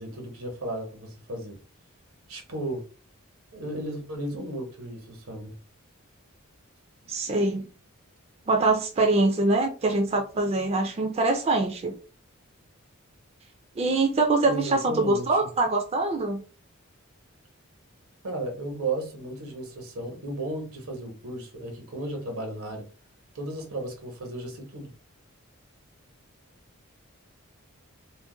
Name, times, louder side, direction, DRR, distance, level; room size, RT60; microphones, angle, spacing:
voice 1, 0.0-1.6 2.3-2.8 3.5-5.5 14.5-15.5 18.2-22.9 23.3-24.9, right 1 dB, 85° right, 1.0 m, -34 dB
voice 2, 7.1-7.7 8.5-11.9 13.8-16.4, right 2 dB, 30° right, 0.3 m, -24 dB
2.5 x 2.1 x 3.7 m
head